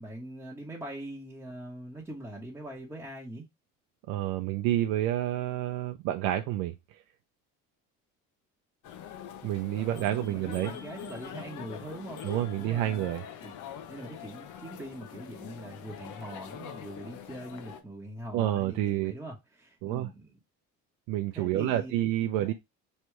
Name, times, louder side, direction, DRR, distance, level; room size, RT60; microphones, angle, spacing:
voice 1, 0.0-3.4 9.8-20.3 21.3-21.9 22.4-22.5, right 1 dB, 5° right, 1.2 m, -42 dB
voice 2, 4.1-7.0 9.4-10.7 12.2-13.2 18.3-19.1 19.8-20.1 21.1-22.5, right 13 dB, 85° right, 0.6 m, -29 dB
sound 1, 8.8-17.8, left 9 dB, 60° left, 0.8 m, -44 dB
3.3 x 3.0 x 4.6 m
cardioid pair, 120°, 34 cm